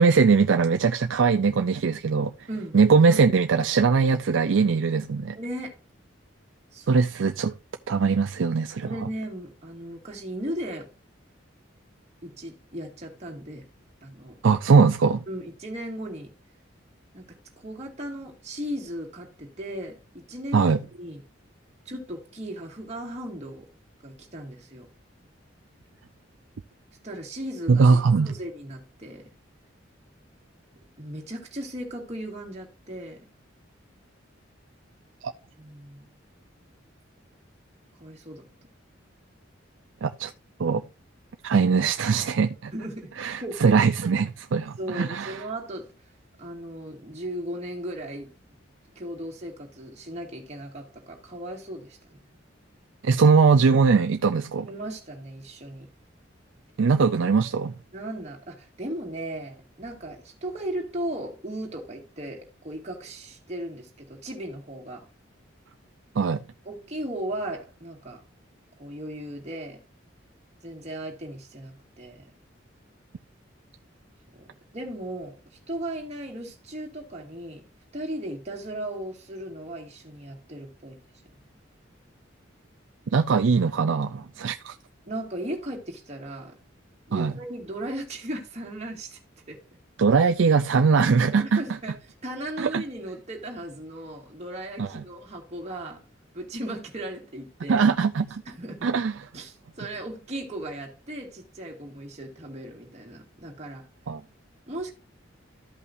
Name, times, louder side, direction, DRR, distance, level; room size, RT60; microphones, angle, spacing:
voice 1, 0.0-2.3 2.7-5.4 6.9-7.5 7.9-8.9 14.4-15.2 20.5-20.8 27.7-28.3 35.2-35.3 40.0-40.3 40.6-40.8 41.4-42.7 43.2-45.4 53.0-54.7 56.8-57.7 66.2-66.4 83.1-84.8 87.1-87.3 90.0-91.6 92.6-92.8 94.8-94.9 97.7-98.4 98.8-99.1 104.1-104.2, right 5 dB, 75° right, 0.4 m, -21 dB
voice 2, 5.3-5.8 6.7-7.0 8.8-10.9 12.2-13.6 14.0-14.4 15.3-16.3 17.1-17.2 17.6-21.2 21.9-23.7 24.0-24.9 27.0-29.3 31.0-33.2 35.6-36.1 38.0-38.4 42.7-43.1 43.4-43.8 44.8-45.9 46.4-48.3 49.0-52.0 54.7-55.9 57.9-65.1 66.7-68.2 68.8-69.8 70.6-72.2 74.3-74.5 74.7-75.4 75.7-77.7 77.9-81.0 85.1-86.5 87.1-89.2 89.5-89.6 91.2-91.9 92.2-96.0 96.3-97.8 98.5-98.9 99.3-103.9 104.7-104.9, right 1 dB, 35° right, 2.2 m, -36 dB
14.0 x 5.5 x 2.6 m
head